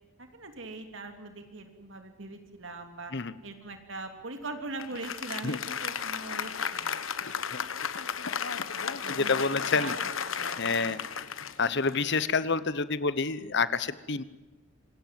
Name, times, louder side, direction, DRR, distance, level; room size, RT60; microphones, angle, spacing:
voice 1, 0.2-3.1 3.4-7.0 9.0-11.0, right 2 dB, 70° right, 6 dB, 3.1 m, -41 dB
Applause, 4.8-12.4, left 7 dB, 80° left, 1.3 m, -34 dB
voice 2, 8.8-10.0 10.6-11.0 11.6-14.2, left 4 dB, 60° left, 15 dB, 1.1 m, -28 dB
26.5 x 19.0 x 7.7 m, 1.2 s
head